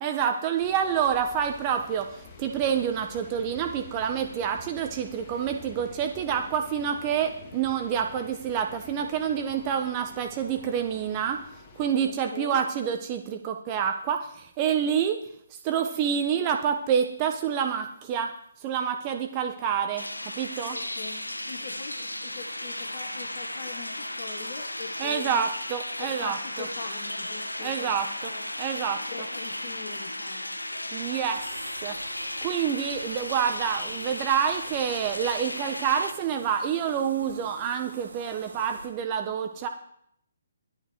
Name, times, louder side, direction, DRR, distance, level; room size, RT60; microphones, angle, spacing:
voice 1, 0.0-11.4 11.7-15.2 15.5-18.3 18.6-20.8 25.0-26.4 27.6-28.3 28.6-29.0 30.9-31.4 31.8-32.0 32.4-39.7, right 8 dB, 25° right, 5 dB, 1.0 m, -28 dB
sound 1, 0.6-12.1, left 4 dB, 25° left, 1.8 m, -48 dB
voice 2, 12.1-12.6 20.7-25.5 26.1-28.5 29.1-30.6, left 5 dB, 45° left, 2 dB, 1.3 m, -42 dB
sound 2, 20.0-36.1, left 1 dB, 85° left, 1.0 m, -35 dB
sound 3, 31.2-38.9, right 3 dB, 65° right, 4.1 m, -47 dB
11.5 x 11.0 x 4.8 m, 0.70 s
figure-of-eight pair, 135°, 0 cm